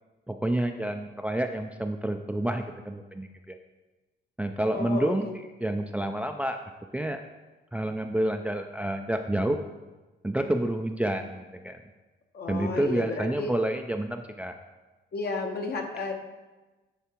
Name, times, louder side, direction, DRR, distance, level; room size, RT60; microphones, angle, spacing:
voice 1, 0.3-3.5 4.4-5.3 5.6-6.6 6.9-7.2 7.7-9.6 10.2-11.8 12.5-14.5, right 1 dB, 5° right, 5 dB, 0.4 m, -29 dB
voice 2, 4.7-5.3 12.3-13.5 15.1-16.1, left 3 dB, 55° left, 3 dB, 1.2 m, -32 dB
10.0 x 3.6 x 4.5 m, 1.2 s
cardioid pair, 90°, 20 cm